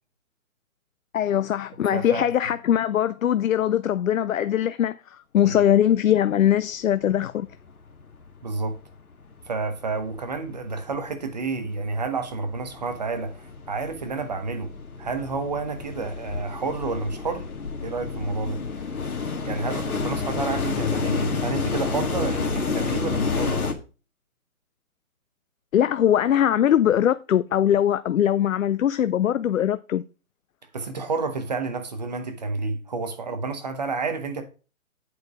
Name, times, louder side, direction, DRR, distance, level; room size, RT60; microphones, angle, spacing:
voice 1, 1.1-7.5 25.7-30.0, left 10 dB, 70° left, 0.5 m, -21 dB
voice 2, 1.9-2.3 5.4-5.7 8.4-8.8 9.5-17.5 17.8-18.6 19.4-23.7 30.7-34.4, right 4 dB, 30° right, 0.9 m, -30 dB
sound 1, 7.1-7.2 7.4-8.4 8.8-23.7, left 4 dB, 90° left, 1.8 m, -30 dB
8.3 x 4.9 x 4.7 m
hypercardioid pair, 165°, 42 cm